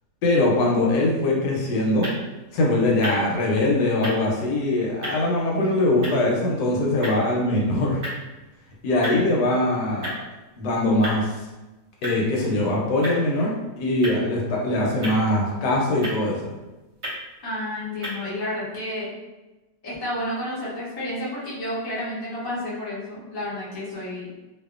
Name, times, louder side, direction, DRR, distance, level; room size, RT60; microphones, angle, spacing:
voice 1, 0.2-2.1 2.5-8.0 8.8-10.2 10.5-11.3 12.0-16.5, left 1 dB, 80° left, -2 dB, 1.2 m, -22 dB
sound 1, 1.9-18.1, equal, 50° right, 1.0 m, -38 dB
voice 2, 17.4-19.1 19.8-24.3, left 1 dB, 30° left, -8 dB, 0.4 m, -31 dB
2.7 x 2.4 x 2.3 m, 1.1 s
omnidirectional pair, 1.8 m